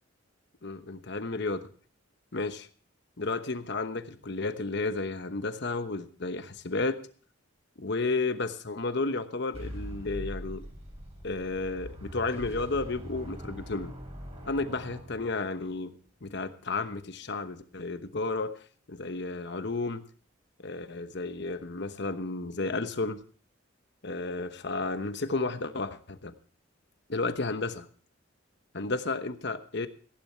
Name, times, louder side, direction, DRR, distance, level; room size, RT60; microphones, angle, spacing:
voice 1, 0.6-1.7 2.3-2.7 3.2-7.0 7.8-10.6 11.2-13.9 14.5-20.0 20.6-23.2 24.0-26.3 27.1-27.9 28.7-29.9, left 3 dB, 60° left, 10 dB, 1.0 m, -32 dB
sound 1, 9.5-15.7, equal, 35° right, 3.3 m, -42 dB
15.5 x 10.5 x 4.4 m, 0.43 s
head